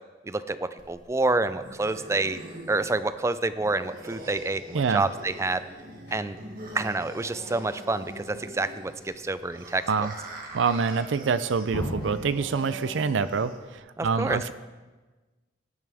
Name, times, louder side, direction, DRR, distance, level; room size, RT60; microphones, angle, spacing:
voice 1, 0.2-2.4 2.7-5.7 6.1-6.4 6.7-10.1 14.0-14.4, right 2 dB, 15° right, 13 dB, 0.4 m, -28 dB
sound 1, 0.8-13.8, right 1 dB, 50° right, 2.0 m, -43 dB
sound 2, 5.8-12.1, equal, 55° left, 4.1 m, -42 dB
voice 2, 10.5-14.5, right 5 dB, 80° right, 14 dB, 0.5 m, -26 dB
16.5 x 11.0 x 3.5 m, 1.3 s
head